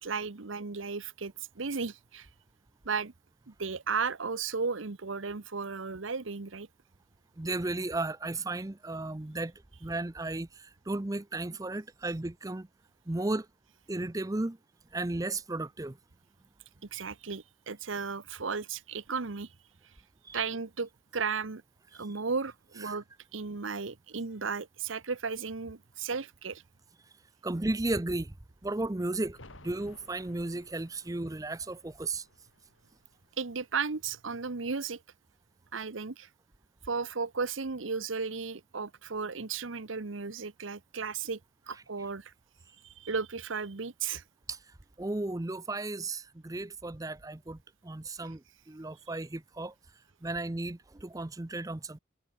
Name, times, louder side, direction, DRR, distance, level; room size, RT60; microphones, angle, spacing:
voice 1, 0.0-2.3 2.8-3.1 3.5-6.7 16.9-19.5 20.3-21.6 21.9-23.0 23.3-26.6 33.4-35.0 35.7-36.3 36.9-41.4 41.7-42.3 42.8-44.2, right 5 dB, 85° right, 1.0 m, -35 dB
voice 2, 7.4-9.5 9.8-12.7 13.1-13.5 13.9-14.6 14.9-16.0 20.2-20.4 21.9-22.1 22.8-23.0 27.4-28.3 28.6-32.3 44.5-49.7 50.2-52.0, right 2 dB, 20° right, 0.6 m, -34 dB
sound 1, 29.3-34.8 35.1-35.2, left 2 dB, 85° left, 3.9 m, -58 dB
head